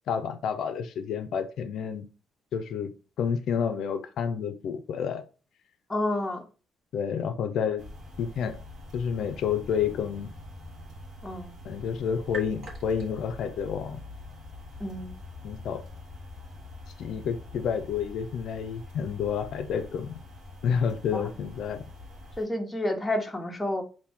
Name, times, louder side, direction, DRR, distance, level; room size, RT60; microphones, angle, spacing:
voice 1, 0.1-2.1 2.5-2.9 3.2-5.2 6.9-7.8 8.2-8.6 8.9-10.3 11.6-14.0 15.4-15.8 17.0-20.2 20.6-21.8, left 7 dB, 75° left, 0.4 m, -29 dB
voice 2, 5.9-6.4 11.2-11.5 14.8-15.1 21.1-21.3 22.4-23.8, left 1 dB, 15° left, 0.9 m, -30 dB
sound 1, 7.8-22.4, left 2 dB, 65° right, 1.2 m, -44 dB
4.1 x 2.6 x 3.5 m
cardioid pair, 90°, 0 cm